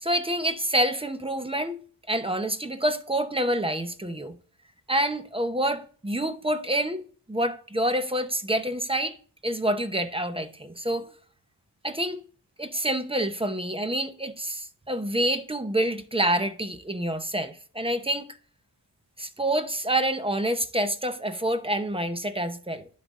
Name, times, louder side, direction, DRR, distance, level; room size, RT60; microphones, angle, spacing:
voice 1, 0.0-1.8 2.1-4.3 4.9-9.1 9.4-11.1 11.8-12.2 12.6-18.3 19.2-22.9, right 1 dB, 15° right, 0.7 m, -27 dB
11.0 x 4.0 x 3.6 m
cardioid pair, 65°, 40 cm